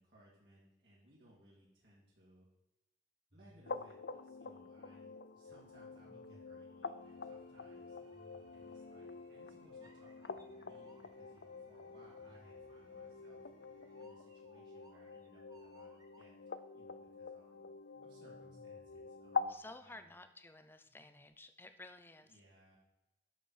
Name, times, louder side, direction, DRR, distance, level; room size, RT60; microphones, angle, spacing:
voice 1, 0.0-2.5 3.3-8.0 8.5-13.4 14.0-17.7 18.0-20.1 22.2-22.8, right 1 dB, 65° right, -6 dB, 2.8 m, -65 dB
sound 1, 3.3-5.1 5.9-6.8 8.1-9.1 9.8-11.4 12.1-16.6 17.9-19.7 20.9-21.3, equal, 20° right, 1.2 m, -66 dB
sound 2, 3.7-19.6, left 5 dB, 65° left, 0.5 m, -46 dB
sound 3, 5.9-14.1, right 1 dB, 80° right, 3.6 m, -71 dB
voice 2, 19.5-22.3, left 2 dB, 10° left, 9 dB, 0.6 m, -54 dB
11.0 x 6.7 x 4.5 m, 0.93 s
head